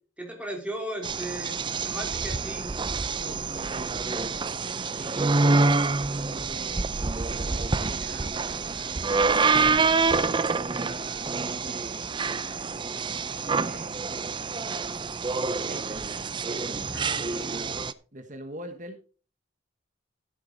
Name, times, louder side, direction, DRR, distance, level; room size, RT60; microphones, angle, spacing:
voice 1, 0.2-2.7 16.9-17.4, right 1 dB, 5° right, 1 dB, 3.4 m, -37 dB
sound 1, 1.0-17.9, right 4 dB, 25° right, 0.5 m, -27 dB
voice 2, 3.1-6.9 7.3-9.4 9.7-11.3 11.6-13.1 13.5-14.2 15.2-17.8 18.1-19.0, right 1 dB, 40° right, 7 dB, 1.3 m, -44 dB
14.0 x 7.8 x 3.9 m, 0.37 s
head